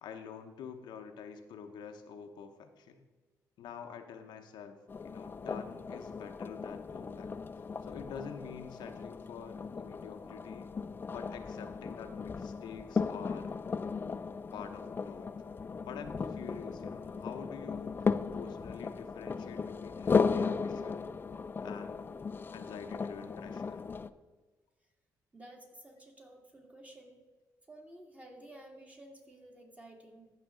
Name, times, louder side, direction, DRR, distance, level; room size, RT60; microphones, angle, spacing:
voice 1, 0.0-3.0 3.6-7.3 7.8-10.7 11.1-13.5 14.5-15.3 15.8-21.1 21.6-22.0 22.5-23.8, left 7 dB, 80° left, 6 dB, 0.8 m, -47 dB
sound 1, 4.9-24.1, left 5 dB, 30° left, 0.3 m, -36 dB
voice 2, 25.3-27.2 27.7-30.3, right 1 dB, 20° right, 0 dB, 2.1 m, -53 dB
14.0 x 5.8 x 3.8 m, 1.3 s
cardioid pair, 95°, 7 cm